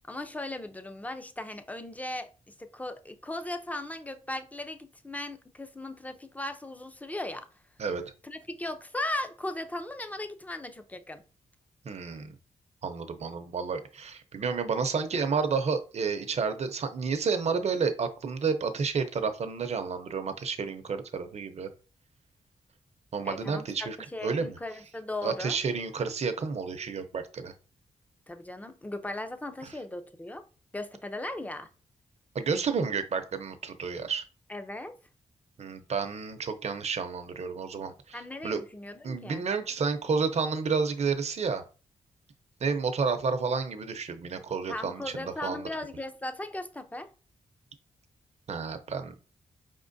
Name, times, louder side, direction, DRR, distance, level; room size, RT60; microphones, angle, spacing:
voice 1, 0.1-7.5 8.2-11.2 23.2-25.6 28.3-30.5 30.7-31.7 34.5-35.0 38.1-39.4 44.7-47.1, left 1 dB, 10° left, 0.6 m, -37 dB
voice 2, 11.8-12.3 12.8-21.7 23.1-24.0 24.2-24.6 25.2-27.5 32.3-34.2 35.6-38.6 39.0-41.6 42.6-45.7 48.5-49.2, right 5 dB, 60° right, 0.7 m, -30 dB
4.8 x 3.6 x 2.6 m
cardioid pair, 70°, 13 cm